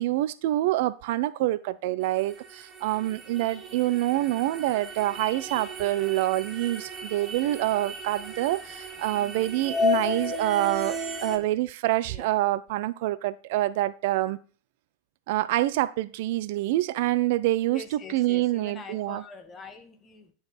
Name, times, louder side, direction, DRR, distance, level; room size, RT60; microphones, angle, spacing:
voice 1, 0.0-14.4 15.3-17.8 18.1-19.2, right 16 dB, 50° right, 0.3 m, -26 dB
sound 1, 2.0-11.4, left 2 dB, 15° right, 1.1 m, -34 dB
voice 2, 9.1-9.6 11.4-11.5 12.1-12.3 17.7-20.3, left 3 dB, 20° left, 1.3 m, -44 dB
9.5 x 4.6 x 3.9 m
figure-of-eight pair, 90°, 0 cm